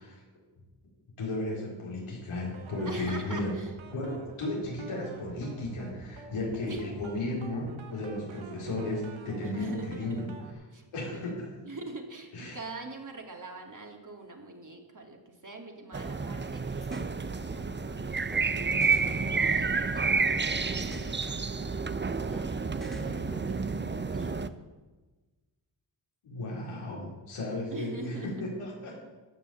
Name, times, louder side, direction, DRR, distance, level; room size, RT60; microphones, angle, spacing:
voice 1, 1.2-3.5 3.9-10.3 10.9-11.5 12.3-12.6 26.2-28.9, left 1 dB, 85° left, -4 dB, 4.3 m, -34 dB
sound 1, 2.5-10.5, right 4 dB, 70° right, 1.7 m, -48 dB
voice 2, 2.9-3.7 6.7-6.8 9.4-10.4 10.7-10.8 11.1-11.4 11.6-24.3 27.7-28.4, right 2 dB, 40° right, 2 dB, 2.5 m, -44 dB
sound 2, 15.9-24.5, right 4 dB, 20° right, 0.8 m, -30 dB
sound 3, 16.8-17.1 18.3-18.4 18.8-20.2 20.8-21.1 22.3-22.4 22.8-23.9, left 1 dB, ahead, 2.5 m, -45 dB
14.0 x 6.2 x 6.9 m, 1.2 s
supercardioid pair, 45°, 49 cm